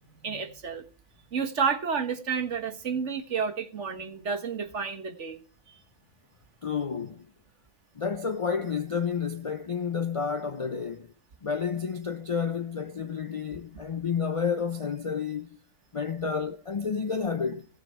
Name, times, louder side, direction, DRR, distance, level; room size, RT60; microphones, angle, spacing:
voice 1, 0.2-0.8 1.3-5.4 5.7-5.8, right 6 dB, 60° right, 1.7 m, -30 dB
voice 2, 6.6-7.3 8.0-11.1 11.4-15.6 15.9-17.7, left 6 dB, 50° left, 0.4 m, -30 dB
17.0 x 6.9 x 4.3 m
omnidirectional pair, 1.4 m